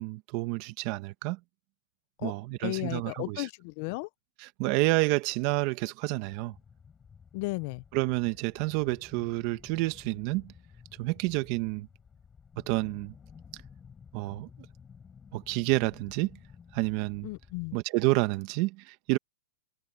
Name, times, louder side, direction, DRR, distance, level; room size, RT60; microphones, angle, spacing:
voice 1, 0.0-1.4 2.2-3.5 4.4-6.5 7.9-10.5 11.0-11.9 12.7-13.1 14.1-14.5 15.3-16.4 16.7-17.3 17.7-19.2, right 21 dB, 40° right, 1.4 m, -29 dB
voice 2, 2.6-4.1 7.3-7.8 17.2-17.8, left 24 dB, 40° left, 0.4 m, -34 dB
sound 1, 6.2-17.6, left 6 dB, 15° left, 6.4 m, -53 dB
supercardioid pair, 160°, 0 cm